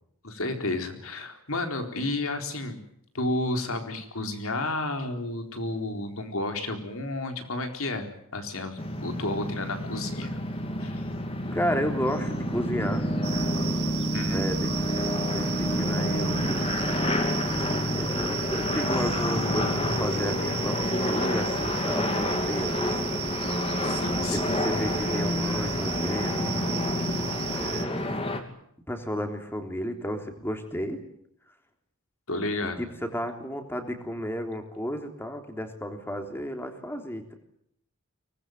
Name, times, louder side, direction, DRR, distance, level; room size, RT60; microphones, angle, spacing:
voice 1, 0.2-2.8 3.1-10.3 10.8-11.0 14.1-14.5 23.8-24.6 32.3-32.9, left 2 dB, 70° left, 6 dB, 4.1 m, -31 dB
sound 1, 8.8-28.4, left 1 dB, 25° left, 2.8 m, -28 dB
voice 2, 11.5-13.0 14.3-14.7 15.3-16.7 17.9-23.0 24.3-26.6 27.5-28.1 28.9-31.0 32.8-37.3, equal, 10° left, 5 dB, 3.4 m, -32 dB
sound 2, 13.2-27.8, right 8 dB, 85° right, 3.1 m, -35 dB
24.0 x 20.5 x 9.4 m, 0.73 s
head